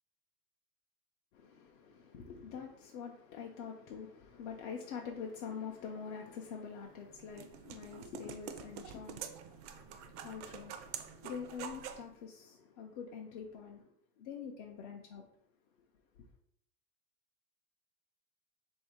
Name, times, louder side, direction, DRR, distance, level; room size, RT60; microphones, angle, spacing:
voice 1, 1.3-13.9 14.2-15.2, left 6 dB, 55° left, 0.6 m, -45 dB
sound 1, 6.8-12.1, right 8 dB, 55° right, 0.5 m, -47 dB
3.5 x 2.7 x 4.7 m
supercardioid pair, 170°, 43 cm